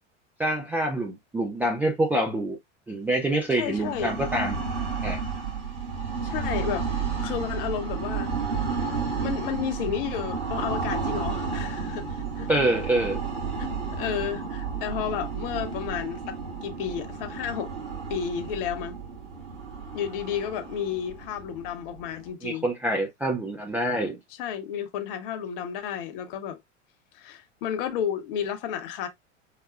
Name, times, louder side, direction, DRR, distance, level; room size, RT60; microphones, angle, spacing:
voice 1, 0.4-2.6 2.9-4.6 5.0-5.2 12.5-13.2 22.4-24.2, right 1 dB, 5° right, 0.3 m, -26 dB
voice 2, 3.5-4.1 6.2-6.9 7.2-8.3 9.2-12.5 13.6-17.7 18.1-19.0 19.9-22.7 24.3-26.6 27.1-29.1, left 9 dB, 50° left, 0.8 m, -32 dB
sound 1, 3.5-22.3, right 5 dB, 70° right, 2.3 m, -32 dB
4.8 x 2.3 x 2.2 m
figure-of-eight pair, 85°, 36 cm